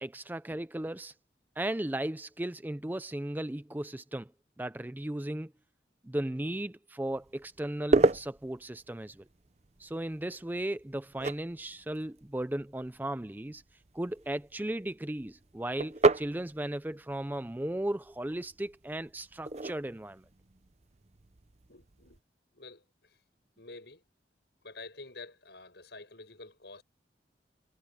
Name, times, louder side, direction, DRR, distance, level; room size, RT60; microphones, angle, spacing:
voice 1, 0.0-1.1 1.6-4.3 4.6-5.5 6.0-9.2 9.8-13.6 13.9-20.2, right 1 dB, 10° right, 0.4 m, -36 dB
sound 1, 7.0-22.2, right 3 dB, 35° right, 0.7 m, -34 dB
voice 2, 21.7-22.2 22.5-23.2 23.6-24.0 24.6-26.8, left 3 dB, 65° left, 6.7 m, -48 dB
head